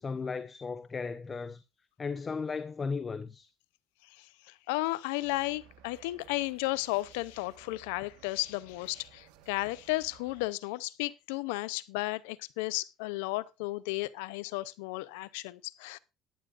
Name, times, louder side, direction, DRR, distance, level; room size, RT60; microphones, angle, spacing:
voice 1, 0.0-1.6 2.0-3.5, left 4 dB, 30° left, 0.7 m, -35 dB
voice 2, 4.2-16.0, left 20 dB, 90° left, 0.6 m, -34 dB
sound 1, 5.2-10.5, right 9 dB, 85° right, 1.3 m, -58 dB
14.5 x 11.0 x 2.5 m
supercardioid pair, 85°, 0 cm